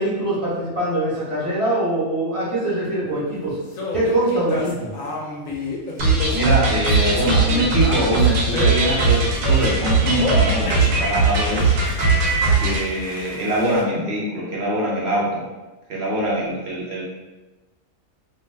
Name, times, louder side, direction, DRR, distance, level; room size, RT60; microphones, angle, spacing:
voice 1, 0.0-3.6 3.9-4.9, right 1 dB, 25° right, -9 dB, 0.9 m, -23 dB
sound 1, 3.8-9.7 10.2-13.8, left 2 dB, 75° left, 1.0 m, -30 dB
sound 2, 6.0-12.8, right 3 dB, 80° right, 1.1 m, -19 dB
voice 2, 6.3-11.8 12.6-15.4 15.9-17.0, right 1 dB, 60° right, -5 dB, 0.9 m, -23 dB
2.7 x 2.2 x 3.2 m, 1.2 s
omnidirectional pair, 1.4 m